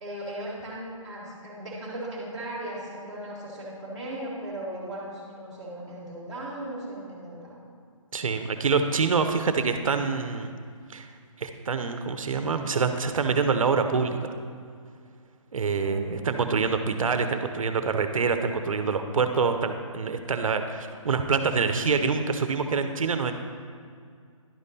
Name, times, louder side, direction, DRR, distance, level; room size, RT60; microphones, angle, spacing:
voice 1, 0.0-7.7 15.8-16.3, right 1 dB, ahead, -14 dB, 1.5 m, -37 dB
voice 2, 8.1-10.5 10.9-11.1 11.4-14.3 15.5-23.3, right 5 dB, 75° right, 8 dB, 0.7 m, -26 dB
11.0 x 5.3 x 4.1 m, 2.2 s
hypercardioid pair, 175°, 17 cm